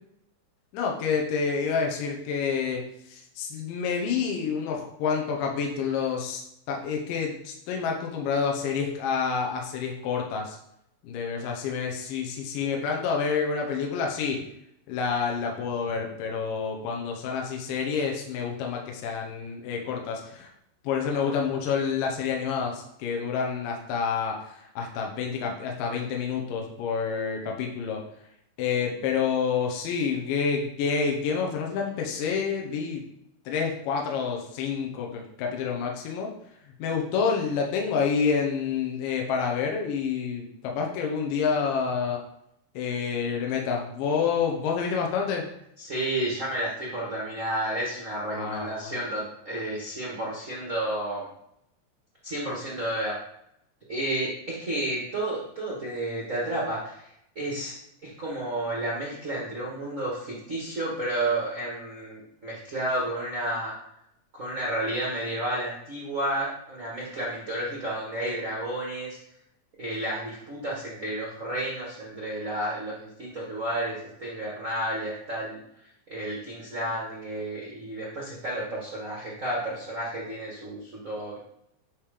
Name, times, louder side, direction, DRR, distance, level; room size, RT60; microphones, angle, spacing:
voice 1, 0.7-6.4 6.7-10.6 11.0-14.4 14.9-20.5 20.8-28.0 28.6-33.0 33.5-36.3 36.8-42.2 42.7-45.5 48.3-49.0, left 6 dB, 80° left, 0 dB, 2.5 m, -28 dB
voice 2, 45.8-51.3 52.2-53.1 53.9-57.1 57.3-57.8 58.0-63.7 64.3-69.2 69.8-75.6 76.1-81.4, right 1 dB, 75° right, -5 dB, 0.7 m, -31 dB
9.0 x 3.3 x 5.0 m, 0.76 s
omnidirectional pair, 4.0 m